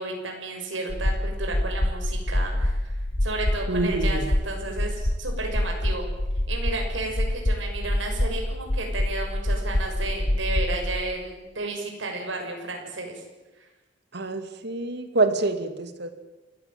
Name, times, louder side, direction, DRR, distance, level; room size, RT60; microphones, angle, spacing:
voice 1, 0.0-2.9 3.2-6.1 6.5-13.2, right 2 dB, 80° right, 2 dB, 6.6 m, -33 dB
sound 1, 0.9-11.0, left 1 dB, 50° left, 1.6 m, -26 dB
voice 2, 3.7-4.3 14.1-16.1, right 2 dB, 60° right, 9 dB, 2.6 m, -26 dB
28.0 x 17.0 x 9.0 m, 1.1 s
head